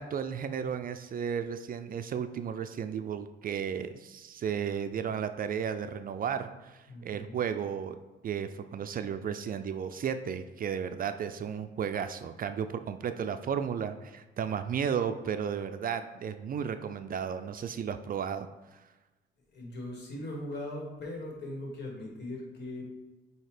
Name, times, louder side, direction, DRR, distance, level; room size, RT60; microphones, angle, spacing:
voice 1, 0.0-8.0 8.2-18.8, right 7 dB, 45° right, 10 dB, 0.4 m, -34 dB
voice 2, 6.9-7.4 19.5-22.8, left 1 dB, 60° left, -1 dB, 2.1 m, -39 dB
7.5 x 2.8 x 4.9 m, 1.1 s
cardioid pair, 90°, 20 cm